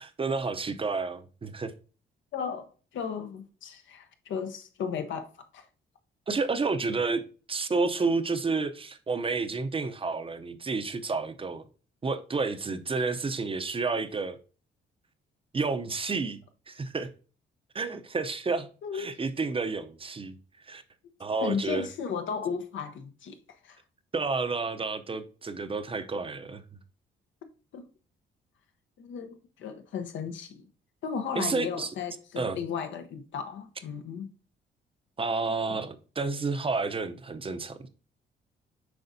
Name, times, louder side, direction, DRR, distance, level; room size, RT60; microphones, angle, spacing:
voice 1, 0.0-1.7 6.3-7.2 7.5-11.6 12.0-14.4 15.5-16.4 16.7-17.1 17.7-18.7 18.9-20.4 20.7-20.8 21.2-21.9 24.1-26.6 31.4-31.9 32.4-32.6 35.2-37.9, right 4 dB, 25° right, 0.6 m, -30 dB
voice 2, 2.3-5.7 18.8-19.1 21.4-23.4 23.6-23.8 27.7-27.8 29.0-30.6 31.0-34.3, left 6 dB, 75° left, 1.0 m, -35 dB
7.8 x 4.8 x 2.7 m
cardioid pair, 90°, 20 cm